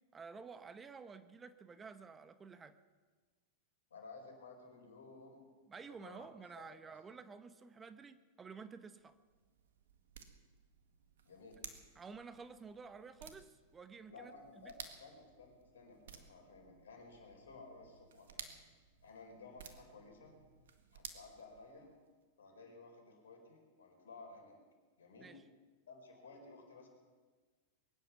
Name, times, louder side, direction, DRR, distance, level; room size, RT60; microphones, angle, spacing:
voice 1, 0.1-2.8 5.7-9.2 11.9-14.7 25.2-25.4, right 5 dB, 20° right, 11 dB, 0.9 m, -52 dB
voice 2, 3.9-5.4 5.7-6.3 6.6-6.8 7.1-7.2 11.2-11.6 14.1-18.5 19.0-20.3 20.9-21.9 22.4-24.6 25.0-25.3 25.9-26.9, left 3 dB, 80° left, 2 dB, 4.6 m, -55 dB
sound 1, 8.9-22.1, right 7 dB, 75° right, 1.7 m, -56 dB
22.5 x 10.5 x 6.0 m, 1.4 s
hypercardioid pair, 105°, 0 cm